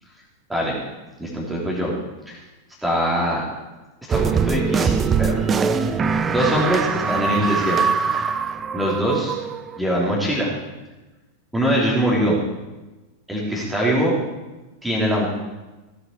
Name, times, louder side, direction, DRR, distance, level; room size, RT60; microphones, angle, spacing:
voice 1, 0.5-0.8 1.2-1.9 2.3-2.4 2.8-3.4 4.1-5.5 5.7-6.0 6.3-7.8 8.7-9.3 9.8-10.5 11.5-12.4 13.3-14.1 14.8-15.3, equal, 5° right, -5 dB, 3.2 m, -22 dB
sound 1, 4.1-9.8, right 6 dB, 20° right, 0.5 m, -22 dB
16.5 x 8.0 x 4.7 m, 1.1 s
figure-of-eight pair, 90°, 0 cm